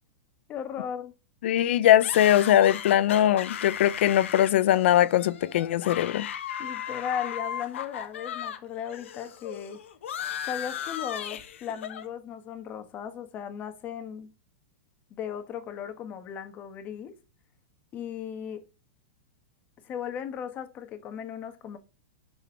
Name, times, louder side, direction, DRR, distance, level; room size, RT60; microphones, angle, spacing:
voice 1, 0.5-1.1 6.6-9.8 10.5-14.3 15.1-17.1 17.9-18.6 19.8-21.8, left 8 dB, 25° left, 1.5 m, -36 dB
voice 2, 1.4-6.3, left 12 dB, 65° left, 0.7 m, -21 dB
sound 1, 2.0-8.6 8.9-12.1, left 9 dB, 80° left, 1.5 m, -36 dB
10.5 x 6.5 x 5.6 m
supercardioid pair, 160°, 7 cm